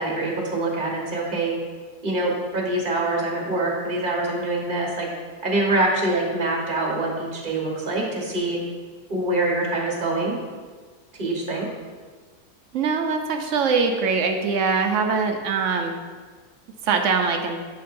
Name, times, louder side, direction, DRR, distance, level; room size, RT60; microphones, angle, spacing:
voice 1, 0.0-1.5 2.0-5.1 5.4-8.6 9.1-10.3 11.2-11.7, right 2 dB, 35° right, -2 dB, 1.3 m, -25 dB
voice 2, 12.7-16.0 16.8-17.6, right 5 dB, 65° right, 4 dB, 0.9 m, -22 dB
10.0 x 4.7 x 2.6 m, 1.5 s
omnidirectional pair, 1.6 m